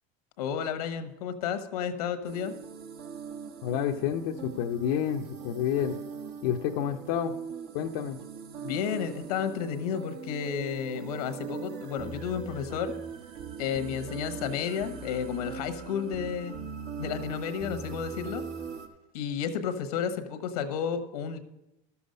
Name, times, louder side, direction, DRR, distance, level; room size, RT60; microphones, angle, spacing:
voice 1, 0.4-2.5 8.6-12.9 13.6-16.5 17.0-18.4 19.1-21.4, left 7 dB, 90° left, 9 dB, 1.1 m, -32 dB
sound 1, 2.2-18.9, right 6 dB, 60° right, 1.3 m, -41 dB
voice 2, 3.6-6.0 6.4-7.3 7.7-8.2, left 9 dB, 75° left, 3 dB, 0.6 m, -29 dB
12.5 x 7.1 x 5.3 m, 0.90 s
supercardioid pair, 110°, 19 cm